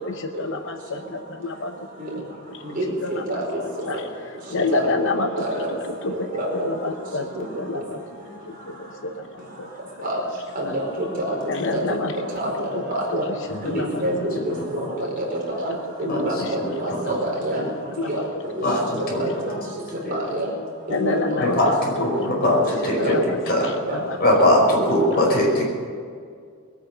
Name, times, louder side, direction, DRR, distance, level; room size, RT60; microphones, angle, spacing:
voice 1, 0.0-1.9 2.1-2.2 2.5-2.7 3.0-4.0 4.5-5.5 5.9-8.0 8.5-9.7 10.6-10.7 11.5-12.3 13.5-14.0 15.7-15.8 16.4-16.5 18.0-18.2 20.9-21.6 22.0-22.3 22.6-22.7 23.0-24.2, left 3 dB, 60° left, 6 dB, 0.8 m, -29 dB
voice 2, 2.6-3.4 3.9-4.0 4.7-5.0 5.3-5.7 6.3-6.7 7.4-7.5 10.0-10.2 10.5-11.4 11.7-11.8 12.3-13.3 13.6-14.8 15.6-15.7 16.0-16.4 16.8-17.6 18.0-18.2 19.0-19.6 20.1-20.5 20.9-21.4 22.9-23.2 23.9-24.0 24.7-24.9, right 1 dB, 45° right, -2 dB, 4.7 m, -27 dB
voice 3, 14.5-14.9 16.1-16.3 16.6-16.7 17.1-17.2 18.6-19.3 20.0-20.1 21.4-23.2 23.5-23.7 24.2-25.7, left 1 dB, 45° left, -2 dB, 5.3 m, -21 dB
21.0 x 9.4 x 6.8 m, 2.1 s
head